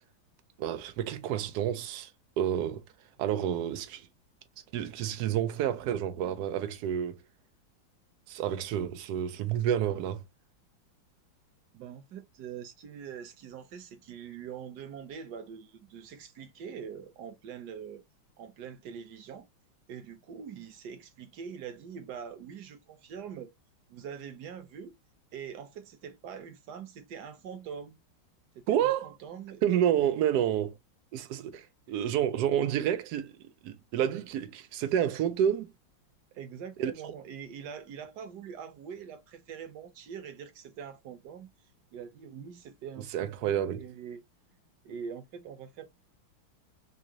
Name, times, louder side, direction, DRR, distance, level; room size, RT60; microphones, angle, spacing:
voice 1, 0.6-2.1 2.4-2.8 3.2-4.1 4.7-7.2 8.3-10.2 28.7-29.1 29.6-30.8 31.1-35.7 36.8-36.9 43.0-43.8, right 10 dB, 80° right, 0.9 m, -29 dB
voice 2, 11.7-18.0 18.4-19.5 19.9-23.5 23.9-24.9 25.3-28.0 28.5-29.6 36.3-41.5 41.9-44.2 44.8-45.9, right 7 dB, 60° right, 1.2 m, -43 dB
3.7 x 2.7 x 2.8 m
omnidirectional pair, 2.3 m